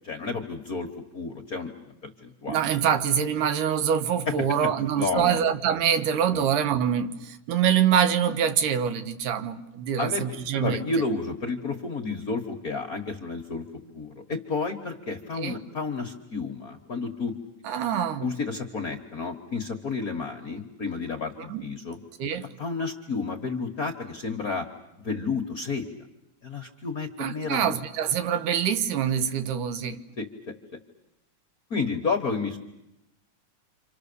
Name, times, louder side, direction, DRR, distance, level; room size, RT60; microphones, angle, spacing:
voice 1, 0.0-2.6 4.3-5.4 6.3-6.4 10.0-10.2 10.5-13.6 13.9-17.3 18.2-22.0 22.6-24.7 25.0-25.9 26.4-27.7 30.2-30.3 31.7-32.6, left 4 dB, 55° left, 1.0 m, -31 dB
voice 2, 2.5-10.9 15.4-15.6 17.6-18.3 21.4-21.7 22.2-22.5 27.2-30.0, right 8 dB, 90° right, 2.7 m, -25 dB
29.0 x 26.0 x 6.9 m
omnidirectional pair, 3.6 m